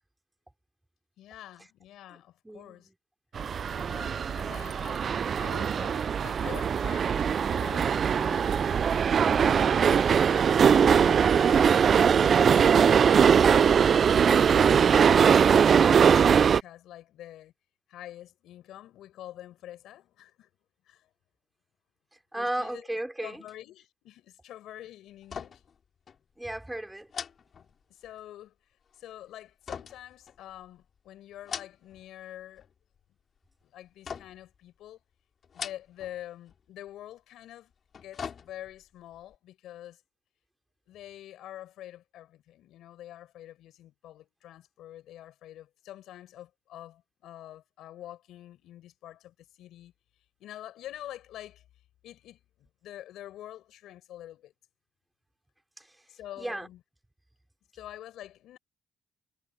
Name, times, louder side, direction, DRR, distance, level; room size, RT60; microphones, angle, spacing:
voice 1, 1.2-2.9 3.6-5.1 5.4-8.6 9.5-13.9 14.2-17.5 17.9-20.5 20.9-21.1 22.3-22.9 23.2-25.7 27.9-28.5 28.9-32.7 33.6-35.0 35.5-40.0 40.9-49.9 50.4-51.6 52.0-54.5 56.1-56.8 57.7-58.6, left 13 dB, 85° left, 4.9 m, -46 dB
voice 2, 2.4-2.9 22.3-23.4 26.4-27.1 55.8-56.1 56.4-56.7, right 1 dB, 10° right, 4.5 m, -35 dB
sound 1, 3.4-16.6, right 7 dB, 50° right, 0.3 m, -21 dB
sound 2, 25.2-25.8 26.1-26.2 27.1-28.2 29.7-30.8 31.3-32.1 32.4-33.0 34.0-34.6 35.4-36.2 36.5-36.6 37.7-38.9 39.3-39.4, left 7 dB, 50° left, 4.0 m, -41 dB
cardioid pair, 90°, 0 cm